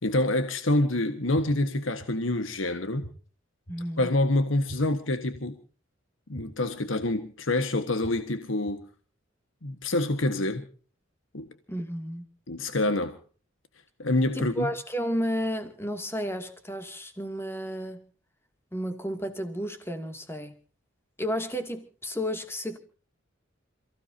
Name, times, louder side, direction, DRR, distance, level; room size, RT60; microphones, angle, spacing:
voice 1, 0.0-3.1 4.0-5.5 6.3-8.8 9.6-10.6 11.3-11.5 12.5-13.2 14.0-14.7, left 1 dB, 80° left, 1.5 m, -26 dB
sound 1, 1.3-1.4 2.0-2.1 3.0-3.1 3.7-3.8 4.7-4.8 5.3-5.4 6.3-6.4 7.0-7.1 8.0-8.1 8.7-8.8, right 1 dB, 60° left, 3.2 m, -41 dB
voice 2, 3.7-4.1 11.7-12.2 14.3-18.0 18.7-20.5 21.2-22.8, equal, 15° left, 2.5 m, -32 dB
28.5 x 16.0 x 2.8 m
head